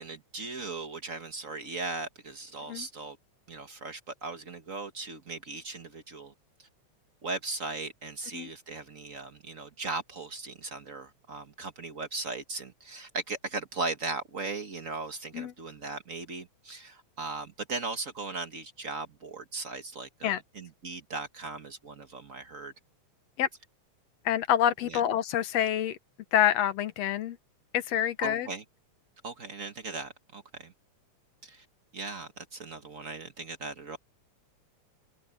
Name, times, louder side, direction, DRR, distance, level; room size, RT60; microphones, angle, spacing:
voice 1, 0.0-3.2 3.5-6.3 6.6-6.7 7.2-22.7 24.8-25.0 28.2-28.6 29.2-30.7 31.4-31.6 31.9-34.0, right 3 dB, 45° right, 1.1 m, -38 dB
voice 2, 24.3-26.0 26.3-27.4 27.7-28.5, left 11 dB, 70° left, 2.0 m, -27 dB
omnidirectional pair, 3.4 m